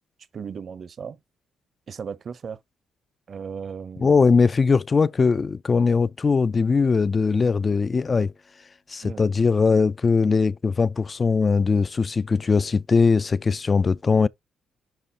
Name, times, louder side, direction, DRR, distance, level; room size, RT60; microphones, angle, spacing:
voice 1, 0.3-1.2 1.9-2.6 3.3-4.3 9.0-9.2, right 6 dB, 50° right, 0.7 m, -36 dB
voice 2, 4.0-8.3 8.9-14.3, left 4 dB, 35° left, 0.3 m, -20 dB
11.0 x 3.9 x 2.8 m
cardioid pair, 90°, 0 cm